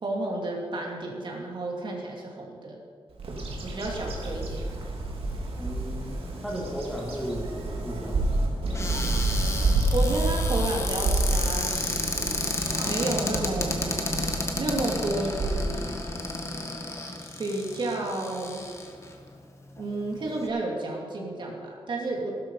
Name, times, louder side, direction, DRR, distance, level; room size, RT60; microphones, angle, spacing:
voice 1, 0.0-2.8 3.6-4.6 9.7-12.5 12.8-13.8 14.6-15.7 17.4-18.7 19.8-22.3, right 2 dB, 55° right, -1 dB, 2.6 m, -31 dB
Bird vocalization bird call bird song, 3.2-16.5, right 2 dB, 75° right, 2.7 m, -29 dB
voice 2, 5.6-8.3, equal, ahead, -5 dB, 2.5 m, -35 dB
Cupboard open or close, 8.7-19.1 19.8-19.9 20.1-20.5, left 2 dB, 30° left, 1.8 m, -32 dB
15.5 x 13.0 x 5.6 m, 2.1 s
wide cardioid pair, 155°, 10 cm